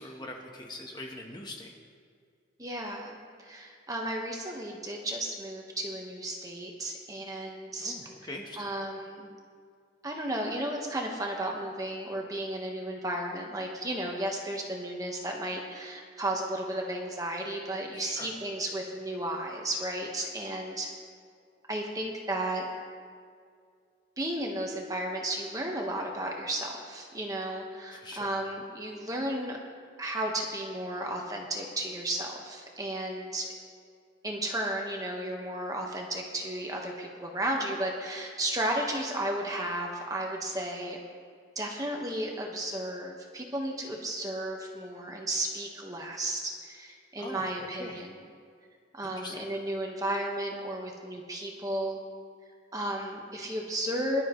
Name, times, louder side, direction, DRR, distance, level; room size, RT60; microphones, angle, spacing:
voice 1, 0.0-1.7 7.8-8.7 17.9-18.3 27.9-28.4 47.2-48.0 49.0-49.5, left 1 dB, 20° left, 0 dB, 1.2 m, -43 dB
voice 2, 2.6-8.1 8.6-9.3 10.0-20.9 21.7-22.7 24.2-29.6 30.0-33.5 34.2-41.0 41.5-48.1 48.9-52.0 52.7-54.2, right 1 dB, 20° right, 0 dB, 1.4 m, -34 dB
22.5 x 11.5 x 3.2 m, 2.2 s
head